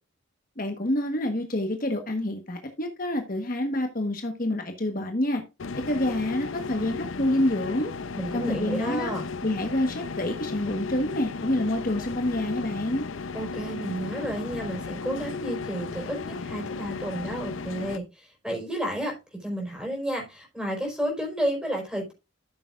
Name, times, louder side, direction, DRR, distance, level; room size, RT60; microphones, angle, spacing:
voice 1, 0.6-5.4 5.9-7.9 8.3-9.1 9.4-13.0, left 1 dB, 45° left, 1.3 m, -27 dB
sound 1, 5.6-18.0, left 4 dB, 80° left, 0.6 m, -35 dB
voice 2, 8.2-9.2 13.3-22.1, right 1 dB, 5° right, 4.6 m, -31 dB
13.5 x 6.9 x 2.5 m
head